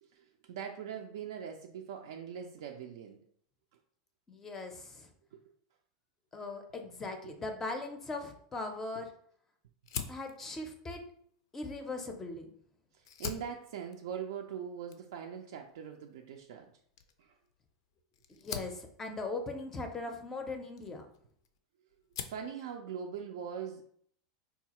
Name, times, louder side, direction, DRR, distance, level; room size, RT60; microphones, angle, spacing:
voice 1, 0.0-3.2 5.3-5.4 6.8-6.9 7.2-7.3 12.9-16.7 17.2-17.4 22.2-23.8, right 8 dB, 80° right, 3 dB, 0.3 m, -42 dB
voice 2, 4.3-5.1 6.3-9.1 10.1-11.0 11.5-12.5 18.3-21.1, left 3 dB, 20° left, 5 dB, 0.4 m, -39 dB
Fire, 9.8-12.5 12.9-21.6 21.9-22.5, left 8 dB, 80° left, 0.4 m, -46 dB
3.9 x 2.3 x 2.8 m, 0.63 s
supercardioid pair, 135°, 2 cm